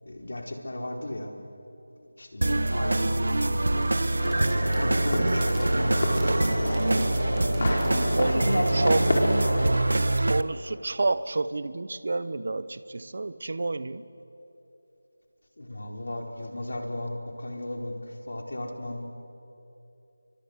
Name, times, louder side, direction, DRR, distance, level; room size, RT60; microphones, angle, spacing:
voice 1, 0.0-1.3 2.2-4.4 4.8-7.1 8.1-9.1 15.6-17.9 18.3-19.1, left 1 dB, 65° left, 3 dB, 4.3 m, -35 dB
sound 1, 2.4-10.4, right 2 dB, 65° right, 1.0 m, -25 dB
sound 2, 3.8-9.3, right 4 dB, 10° right, 1.8 m, -50 dB
sound 3, 4.2-9.6, left 1 dB, 35° left, 4.8 m, -29 dB
voice 2, 7.7-9.1 10.2-14.0, right 3 dB, 40° right, 16 dB, 0.9 m, -30 dB
29.5 x 24.0 x 8.2 m, 2.9 s
figure-of-eight pair, 180°, 0 cm